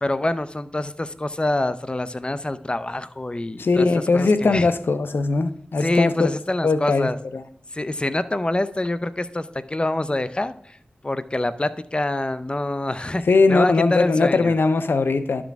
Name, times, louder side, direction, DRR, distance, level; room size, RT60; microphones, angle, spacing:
voice 1, 0.0-3.9 4.1-4.7 5.8-7.2 7.7-10.8 11.0-13.2 13.5-14.5, left 1 dB, 30° left, 13 dB, 0.6 m, -26 dB
voice 2, 3.6-6.1 6.6-7.4 13.3-15.4, left 3 dB, 85° left, 12 dB, 0.5 m, -20 dB
11.5 x 6.2 x 3.4 m, 0.67 s
cardioid pair, 40°, 4 cm